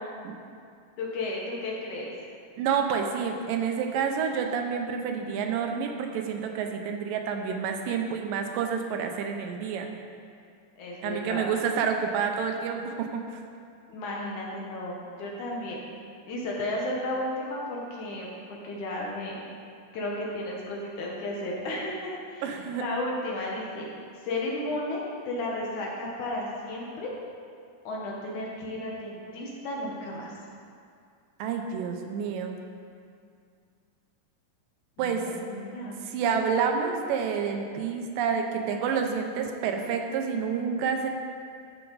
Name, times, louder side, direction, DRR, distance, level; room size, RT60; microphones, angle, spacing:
voice 1, 1.0-2.1 10.8-11.5 13.9-15.8 16.3-19.5 19.9-23.9 24.2-27.1 27.8-30.3 35.0-36.0, left 1 dB, 65° left, -3 dB, 2.5 m, -33 dB
voice 2, 2.6-9.9 11.0-13.4 22.4-22.8 31.4-32.6 35.0-35.3 36.0-41.1, right 6 dB, 80° right, 4 dB, 2.3 m, -29 dB
13.5 x 5.8 x 4.0 m, 2.3 s
omnidirectional pair, 4.0 m